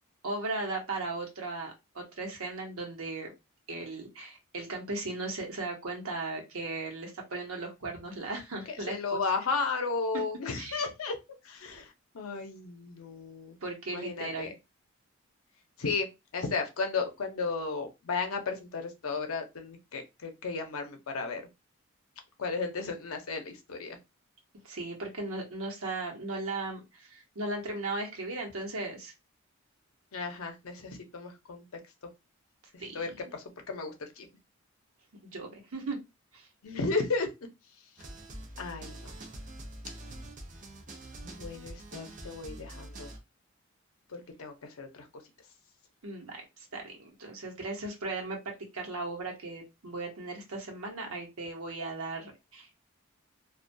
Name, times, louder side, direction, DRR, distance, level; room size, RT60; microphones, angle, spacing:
voice 1, 0.2-3.3 3.7-9.2 10.6-10.9 13.6-14.5 24.6-29.1 32.8-32.9 35.2-36.0 36.3-36.4 46.0-46.4 46.7-52.7, right 2 dB, 85° right, 0.9 m, -37 dB
voice 2, 8.7-11.2 11.4-13.6 13.9-14.5 15.8-16.1 16.3-21.4 22.4-24.0 30.1-31.6 32.7-34.3 36.6-37.3 38.6-39.1 41.2-43.1 44.1-45.1, left 4 dB, 80° left, 0.6 m, -34 dB
sound 1, 38.0-43.2, right 1 dB, 35° right, 0.5 m, -45 dB
2.3 x 2.2 x 2.5 m
head